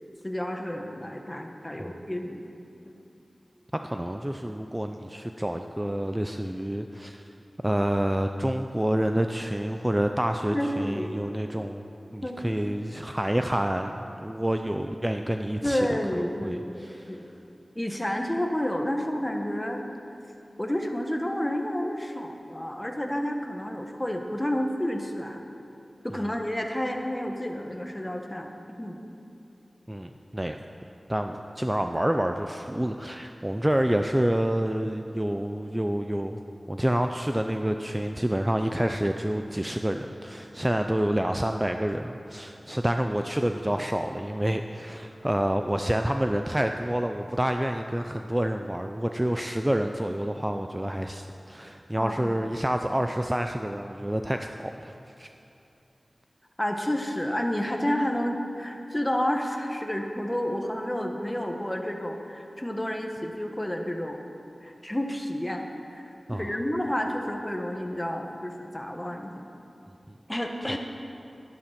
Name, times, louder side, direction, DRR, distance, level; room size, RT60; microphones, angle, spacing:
voice 1, 0.2-2.4 2.9-3.0 10.5-11.1 12.2-12.4 15.6-17.3 17.7-19.8 20.6-25.5 26.0-28.5 28.8-29.0 51.9-52.4 56.6-64.2 64.6-69.5 70.3-70.8, equal, 15° left, 3 dB, 1.3 m, -30 dB
voice 2, 3.7-7.2 7.6-11.9 12.1-15.9 16.4-17.2 26.1-26.3 29.9-30.6 31.1-36.4 36.7-55.3 66.3-66.6 70.1-70.2 70.7-70.8, right 1 dB, 15° right, 5 dB, 0.5 m, -28 dB
11.5 x 11.5 x 5.9 m, 2.8 s
wide cardioid pair, 60°, 0 cm